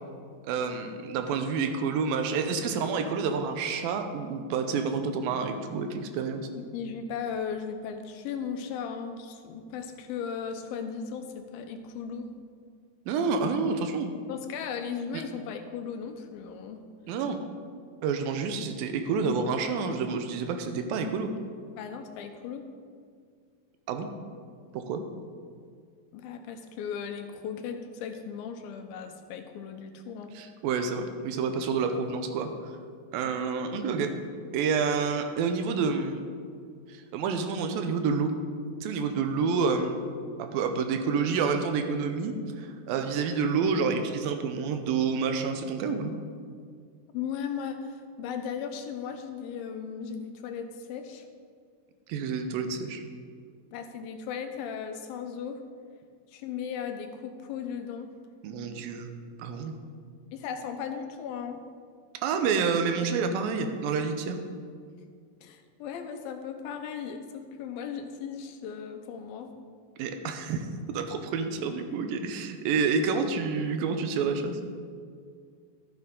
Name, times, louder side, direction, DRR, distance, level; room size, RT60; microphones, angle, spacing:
voice 1, 0.4-6.5 13.1-14.1 15.1-15.2 17.1-17.4 18.0-21.3 23.9-24.1 24.7-25.0 30.3-32.5 33.1-34.1 34.5-36.2 36.9-38.3 38.8-46.1 52.1-53.0 58.4-59.1 59.4-59.7 62.2-64.4 70.0-74.6, right 5 dB, 85° right, 7 dB, 2.5 m, -29 dB
voice 2, 6.7-12.3 14.3-16.8 21.8-22.7 26.1-30.3 47.1-51.2 53.7-55.6 56.3-58.1 60.3-61.6 65.4-69.5, left 7 dB, 90° left, 6 dB, 2.6 m, -37 dB
13.0 x 8.4 x 3.8 m, 2.1 s
omnidirectional pair, 4.1 m